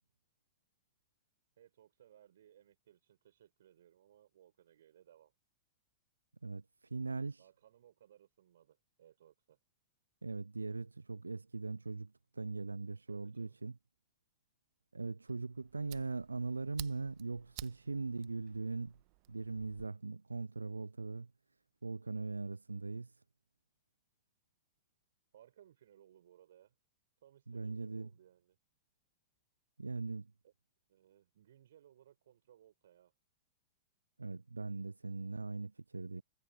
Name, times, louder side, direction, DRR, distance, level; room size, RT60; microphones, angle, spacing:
voice 1, 1.6-5.3 7.4-9.6 13.1-13.6 25.3-26.8 27.2-28.6 30.4-30.5 30.9-33.1, right 11 dB, 65° right, 4.3 m, -64 dB
voice 2, 6.4-7.5 10.2-13.7 14.9-19.0 19.3-21.3 21.8-23.2 27.5-28.1 29.8-30.3 34.2-36.2, right 3 dB, 90° right, 0.3 m, -40 dB
Fire, 15.3-19.9, right 31 dB, 45° right, 1.2 m, -54 dB
figure-of-eight pair, 100°, 0 cm